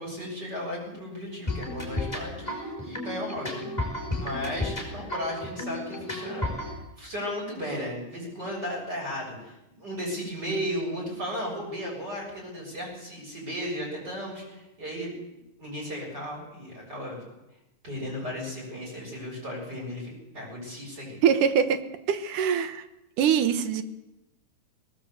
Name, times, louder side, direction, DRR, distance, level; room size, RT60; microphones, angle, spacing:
voice 1, 0.0-3.6 4.2-15.1 15.6-17.2 17.8-21.2, equal, 30° right, -2 dB, 7.5 m, -35 dB
sound 1, 1.5-6.7, left 2 dB, 10° left, 4.7 m, -33 dB
voice 2, 21.2-21.8 22.1-22.8 23.2-23.8, right 8 dB, 75° right, 10 dB, 2.7 m, -23 dB
19.5 x 19.0 x 8.0 m, 0.93 s
omnidirectional pair, 3.7 m